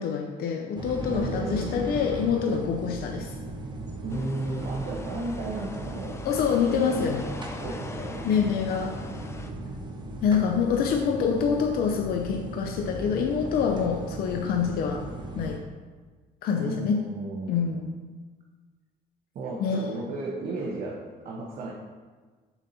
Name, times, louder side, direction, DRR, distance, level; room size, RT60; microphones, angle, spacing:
voice 1, 0.0-3.3 6.2-7.2 8.0-9.0 10.2-15.1 15.4-15.6 16.4-17.1 17.5-17.9 19.6-19.8, left 6 dB, 65° left, 3 dB, 0.6 m, -26 dB
sound 1, 0.8-15.6, right 2 dB, 25° right, 0.8 m, -37 dB
voice 2, 1.1-1.7 4.0-6.2 6.9-7.2 7.6-8.3 16.6-17.6 19.3-21.7, right 2 dB, 55° right, -3 dB, 0.9 m, -34 dB
sound 2, 4.1-9.5, left 2 dB, 15° left, 0.5 m, -42 dB
6.9 x 4.1 x 4.2 m, 1.4 s
cardioid pair, 110°, 17 cm